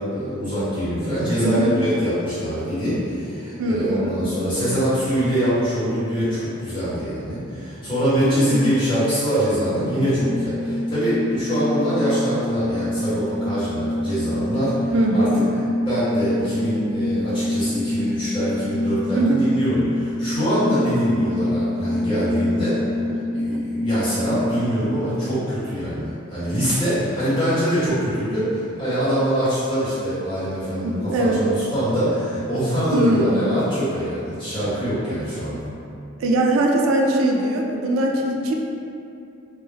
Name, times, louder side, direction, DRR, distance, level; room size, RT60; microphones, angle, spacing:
voice 1, 0.0-15.3 15.8-22.9 23.3-35.7, equal, 25° left, -13 dB, 1.0 m, -24 dB
voice 2, 1.4-1.8 3.6-4.1 8.3-8.8 14.9-15.4 19.2-19.4 23.1-23.3 30.8-31.4 32.9-33.5 36.2-38.5, right 1 dB, 85° right, 1 dB, 0.3 m, -21 dB
sound 1, 10.1-24.6, left 1 dB, 60° left, 0.7 m, -26 dB
2.2 x 2.1 x 3.2 m, 2.7 s
head